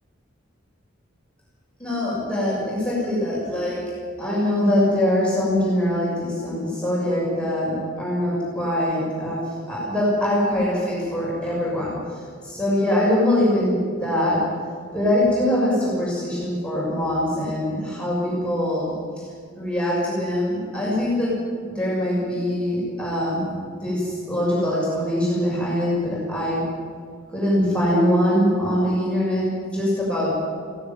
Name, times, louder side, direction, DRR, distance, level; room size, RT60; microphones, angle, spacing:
voice 1, 1.8-3.9 4.2-14.4 14.9-19.3 19.6-21.3 21.7-26.6 27.3-30.4, left 1 dB, 5° left, -7 dB, 6.8 m, -23 dB
17.5 x 16.5 x 9.4 m, 2.1 s
head